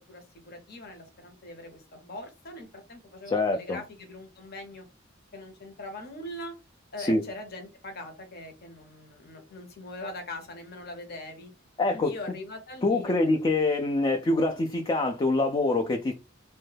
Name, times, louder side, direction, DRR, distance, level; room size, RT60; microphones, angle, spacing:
voice 1, 0.1-4.8 5.3-6.6 6.9-11.5 11.9-13.3, left 1 dB, 50° left, 0.8 m, -42 dB
voice 2, 3.3-3.8 7.0-7.2 11.8-12.1 12.8-16.1, left 2 dB, 25° left, 0.3 m, -25 dB
3.1 x 2.2 x 3.2 m
head